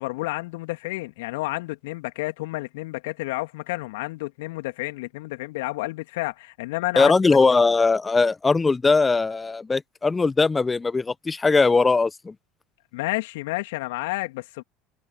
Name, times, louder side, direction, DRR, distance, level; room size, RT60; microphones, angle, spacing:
voice 1, 0.0-7.1 12.9-14.6, left 21 dB, 65° left, 3.1 m, -30 dB
voice 2, 7.0-12.3, left 4 dB, 20° left, 1.0 m, -20 dB
open air
figure-of-eight pair, 70°, 0 cm